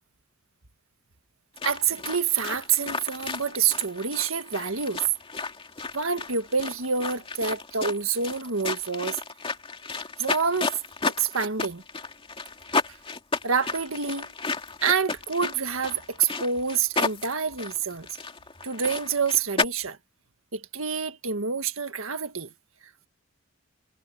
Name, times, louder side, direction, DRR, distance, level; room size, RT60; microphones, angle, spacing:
sound 1, 1.6-19.6, left 4 dB, 25° left, 2.6 m, -33 dB
voice 1, 1.6-5.0 5.9-9.2 10.2-10.8 11.2-11.8 13.4-14.3 14.8-18.1 18.6-20.0 20.5-22.5, right 6 dB, 75° right, 1.7 m, -27 dB
head